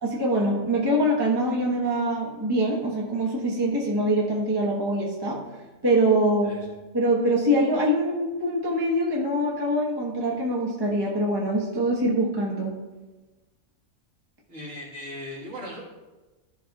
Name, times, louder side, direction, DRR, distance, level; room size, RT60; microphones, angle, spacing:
voice 1, 0.0-5.4 5.8-6.5 6.9-12.7, right 1 dB, 20° right, -3 dB, 1.0 m, -24 dB
voice 2, 14.5-15.8, left 1 dB, 55° right, -5 dB, 2.0 m, -38 dB
12.5 x 6.0 x 2.3 m, 1.2 s
omnidirectional pair, 1.5 m